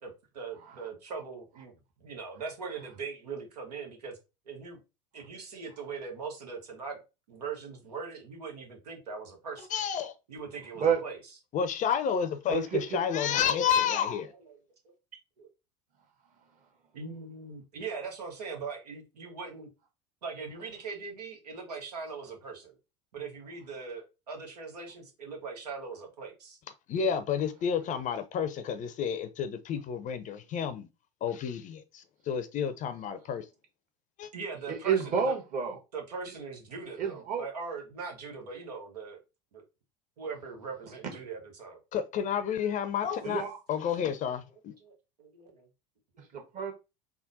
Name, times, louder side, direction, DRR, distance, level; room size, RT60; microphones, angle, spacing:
voice 1, 0.0-4.2 4.5-4.8 5.1-7.0 7.3-9.7 10.3-11.2 13.5-13.6 14.3-14.6 14.8-14.9 15.4-15.5 16.9-19.7 20.2-22.8 23.1-26.6 32.3-32.8 33.3-33.4 34.3-35.3 35.9-39.2 39.5-39.6 40.2-41.8 44.8-44.9 45.2-45.7, right 5 dB, 80° right, 1.1 m, -41 dB
voice 2, 9.7-10.1 11.5-14.3 26.9-30.9 31.2-33.4 34.2-34.3 41.9-43.4 43.7-44.7, left 8 dB, 40° left, 0.6 m, -30 dB
voice 3, 12.5-13.0 34.7-35.7 37.0-37.4 43.2-43.6 46.2-46.7, right 7 dB, 40° right, 1.4 m, -29 dB
3.6 x 2.1 x 3.9 m
hypercardioid pair, 75°, 20 cm